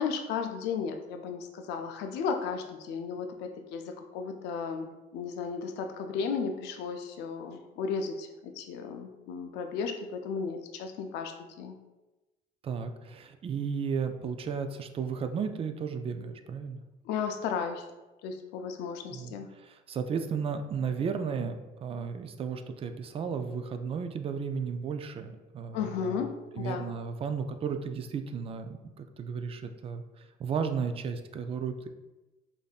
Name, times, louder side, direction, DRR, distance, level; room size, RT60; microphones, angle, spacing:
voice 1, 0.0-11.8 17.0-17.9 18.2-19.5 25.7-26.9, left 6 dB, 90° left, 5 dB, 0.4 m, -34 dB
voice 2, 12.6-16.8 19.1-26.2 26.5-31.9, right 6 dB, 35° right, 8 dB, 0.3 m, -34 dB
5.0 x 2.6 x 2.4 m, 1.1 s
cardioid pair, 110°, 17 cm